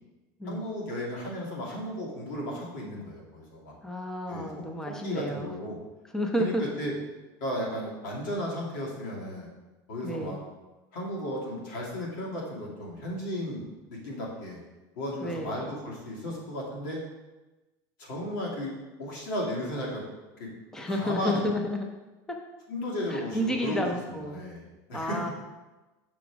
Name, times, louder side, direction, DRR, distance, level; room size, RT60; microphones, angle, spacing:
voice 1, 0.4-3.7 4.3-5.8 6.4-6.9 7.4-9.5 9.9-10.4 10.9-13.6 13.9-14.6 15.0-17.0 18.0-18.7 19.0-20.0 20.4-20.5 20.9-21.5 22.7-25.2, left 1 dB, 85° left, -3 dB, 2.6 m, -34 dB
voice 2, 3.8-5.5 6.1-6.6 10.0-10.4 15.2-15.6 20.7-21.9 22.3-22.4 23.1-24.4 24.9-25.3, equal, 5° left, 3 dB, 0.5 m, -31 dB
6.2 x 4.3 x 6.0 m, 1.1 s
supercardioid pair, 150°, 10 cm